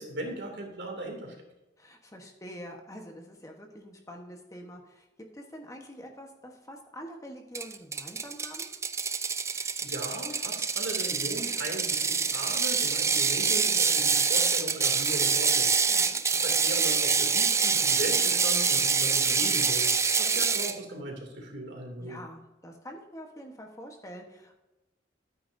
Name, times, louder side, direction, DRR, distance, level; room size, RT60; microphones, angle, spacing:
voice 1, 0.0-1.3 9.5-15.9 16.3-19.9 20.2-22.2, right 1 dB, 70° right, 1 dB, 2.7 m, -38 dB
voice 2, 1.8-8.7 15.9-16.2 20.3-20.5 22.0-24.6, equal, 20° left, 2 dB, 1.2 m, -45 dB
Ratchet pawl, 7.5-20.8, right 5 dB, 15° right, 0.4 m, -26 dB
12.5 x 9.1 x 2.7 m, 1.0 s
head